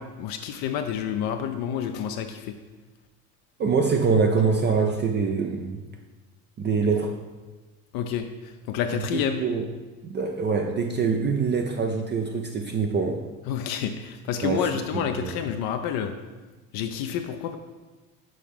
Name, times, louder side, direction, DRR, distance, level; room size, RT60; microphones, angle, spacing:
voice 1, 0.0-2.5 7.9-9.4 13.5-16.1 16.7-17.6, left 8 dB, 55° left, 6 dB, 0.5 m, -29 dB
voice 2, 3.6-5.8 6.6-7.1 8.9-9.7 10.0-13.2 14.4-15.3, right 5 dB, 25° right, 3 dB, 0.4 m, -25 dB
6.4 x 4.5 x 3.6 m, 1.3 s
hypercardioid pair, 70°, 43 cm